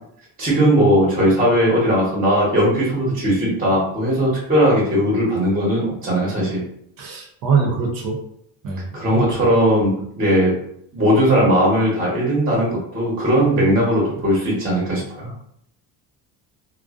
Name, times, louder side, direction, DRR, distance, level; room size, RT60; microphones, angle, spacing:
voice 1, 0.4-6.6 8.9-10.5 10.9-15.3, equal, 20° right, -5 dB, 0.8 m, -18 dB
voice 2, 7.0-8.2 8.6-8.9 9.1-9.2, right 5 dB, 60° right, 0 dB, 0.6 m, -22 dB
2.5 x 2.1 x 2.3 m, 0.74 s
cardioid pair, 130°, 39 cm